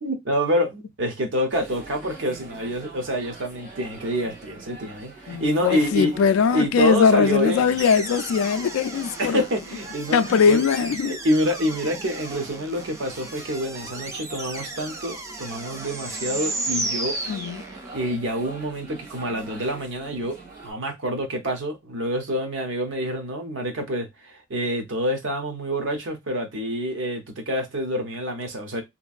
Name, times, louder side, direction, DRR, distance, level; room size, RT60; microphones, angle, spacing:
voice 1, 0.0-6.1 6.5-7.7 9.2-17.2 17.9-20.4 20.6-28.8, equal, 65° right, 0.8 m, -27 dB
sound 1, 1.5-20.7, right 3 dB, 40° right, 1.3 m, -43 dB
voice 2, 5.3-9.4 10.1-11.2 17.3-17.6, left 6 dB, 80° left, 0.3 m, -20 dB
sound 2, 7.8-18.1, right 2 dB, 15° right, 0.3 m, -34 dB
2.9 x 2.6 x 2.3 m
head